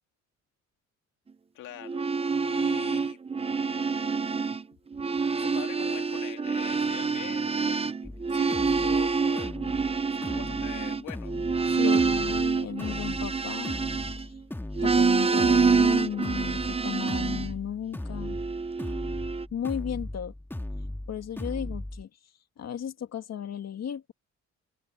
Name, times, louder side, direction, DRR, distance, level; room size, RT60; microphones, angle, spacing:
voice 1, 1.5-2.1 2.4-3.2 5.4-9.5 10.2-12.0, left 13 dB, 85° left, 2.4 m, -43 dB
sound 1, 1.8-4.6 4.9-14.4 14.7-17.5 18.2-19.4, right 5 dB, 20° right, 0.7 m, -27 dB
sound 2, 8.0-22.0, left 1 dB, 5° left, 2.1 m, -38 dB
voice 2, 11.7-13.8 14.1-14.3 14.8-18.4 19.5-20.3 21.1-22.1 22.6-24.1, left 9 dB, 60° left, 2.2 m, -34 dB
open air
cardioid pair, 90°, 30 cm